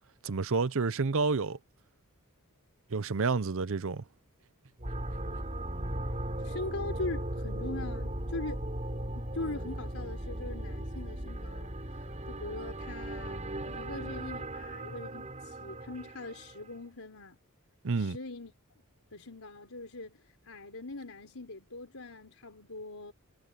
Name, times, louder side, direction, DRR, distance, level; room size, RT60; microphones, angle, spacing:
voice 1, 0.2-1.6 2.9-4.0 17.8-18.2, right 4 dB, 65° right, 0.7 m, -29 dB
sound 1, 4.8-16.7, right 1 dB, 30° right, 5.3 m, -37 dB
voice 2, 6.4-8.6 9.1-17.4 18.0-18.5 19.1-23.1, left 2 dB, 65° left, 5.3 m, -41 dB
head